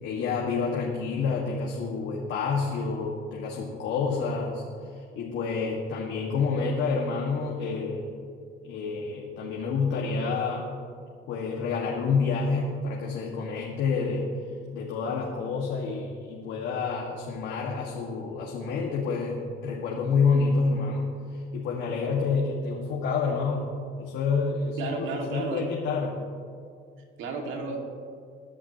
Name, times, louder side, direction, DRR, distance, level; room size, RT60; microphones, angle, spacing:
voice 1, 0.0-8.1 8.6-10.7 11.3-14.3 14.7-23.7 24.0-26.2, left 4 dB, 70° left, -3 dB, 1.8 m, -28 dB
voice 2, 24.8-25.6 27.2-27.8, right 3 dB, 70° right, 2 dB, 2.3 m, -32 dB
21.5 x 11.0 x 3.0 m, 2.3 s
cardioid pair, 130°, 20 cm